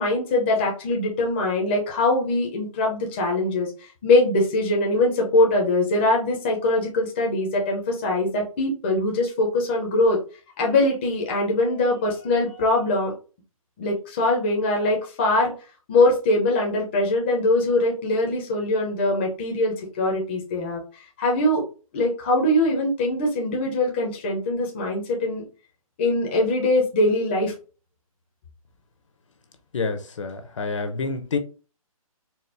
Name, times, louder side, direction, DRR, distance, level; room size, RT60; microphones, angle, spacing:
voice 1, 0.0-10.2 10.6-13.1 13.8-15.5 15.9-20.8 21.2-21.6 21.9-25.4 26.0-27.5, left 2 dB, 20° left, 0.6 m, -22 dB
voice 2, 29.7-31.4, left 4 dB, 55° left, 0.8 m, -28 dB
4.2 x 2.0 x 3.3 m
hypercardioid pair, 170°, 19 cm